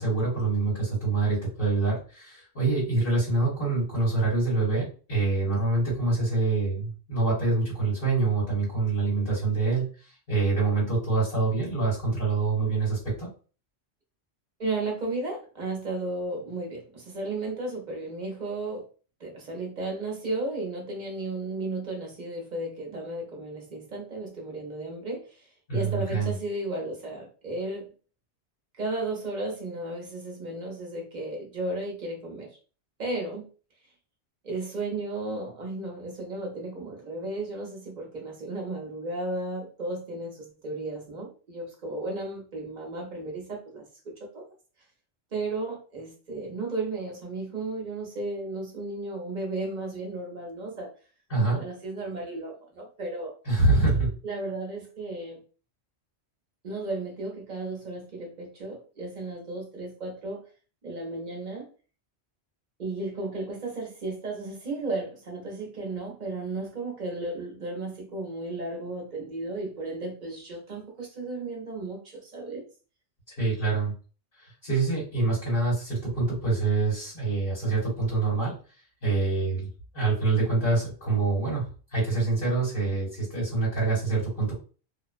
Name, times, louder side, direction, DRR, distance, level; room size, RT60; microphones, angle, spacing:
voice 1, 0.0-9.9 10.3-13.3 25.7-26.3 51.3-51.6 53.4-54.1 73.3-73.9 74.4-78.5 79.0-79.7 79.9-81.7 81.9-84.5, right 3 dB, 50° left, -7 dB, 1.4 m, -25 dB
voice 2, 14.6-18.8 19.2-25.5 25.7-27.9 28.8-32.6 33.0-33.4 34.4-43.9 44.2-44.4 45.3-50.9 51.6-53.3 54.2-55.4 56.6-60.4 60.8-61.7 62.8-72.6, right 2 dB, 45° right, 0 dB, 0.8 m, -34 dB
2.5 x 2.1 x 2.4 m, 0.37 s
omnidirectional pair, 1.1 m